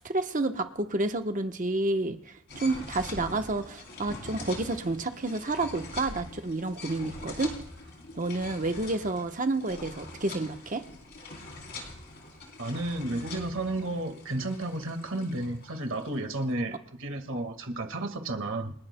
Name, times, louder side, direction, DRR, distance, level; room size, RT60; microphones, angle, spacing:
voice 1, 0.0-2.2 2.5-7.5 8.1-10.8, right 2 dB, 35° right, 7 dB, 0.9 m, -30 dB
sound 1, 2.5-16.4, left 2 dB, 50° left, 3.5 m, -44 dB
voice 2, 12.6-18.7, right 2 dB, 60° right, 5 dB, 1.8 m, -32 dB
29.0 x 11.0 x 2.2 m, 0.72 s
head